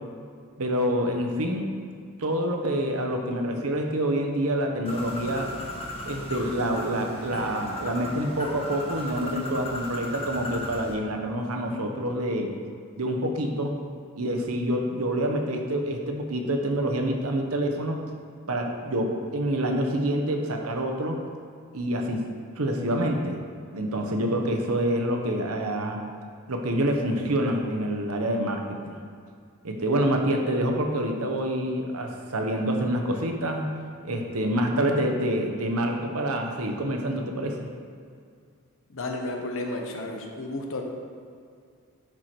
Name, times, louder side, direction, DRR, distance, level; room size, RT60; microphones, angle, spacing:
voice 1, 0.6-1.7 2.2-5.6 6.0-12.5 13.0-13.8 14.1-18.0 18.5-21.2 21.7-22.2 22.6-23.4 23.7-26.0 26.5-29.0 29.6-33.7 34.0-37.7, right 1 dB, 70° right, 3 dB, 1.0 m, -27 dB
Bird, 4.9-11.0, left 1 dB, 25° left, 1.0 m, -36 dB
voice 2, 38.9-40.8, left 2 dB, 60° left, 2 dB, 1.1 m, -32 dB
10.5 x 4.8 x 4.5 m, 2.2 s
head